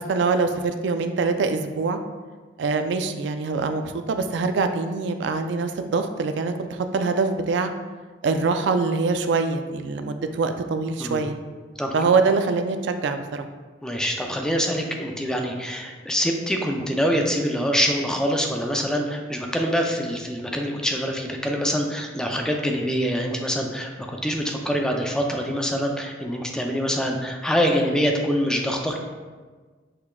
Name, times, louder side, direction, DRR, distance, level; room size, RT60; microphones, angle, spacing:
voice 1, 0.0-2.0 2.6-7.7 8.2-11.4 11.9-13.5, right 4 dB, 75° right, 7 dB, 0.3 m, -24 dB
voice 2, 13.8-29.0, equal, 5° left, 2 dB, 0.4 m, -25 dB
6.6 x 3.5 x 2.2 m, 1.4 s
head